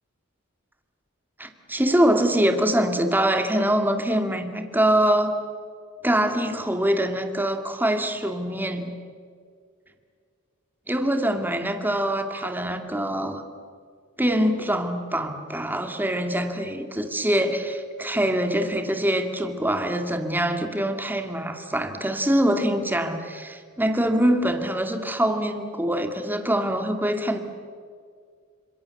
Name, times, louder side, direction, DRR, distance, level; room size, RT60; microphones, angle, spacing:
voice 1, 1.4-5.3 6.0-8.9 10.9-13.4 14.2-27.4, right 1 dB, 10° right, 6 dB, 2.3 m, -24 dB
29.5 x 26.5 x 7.1 m, 2.1 s
head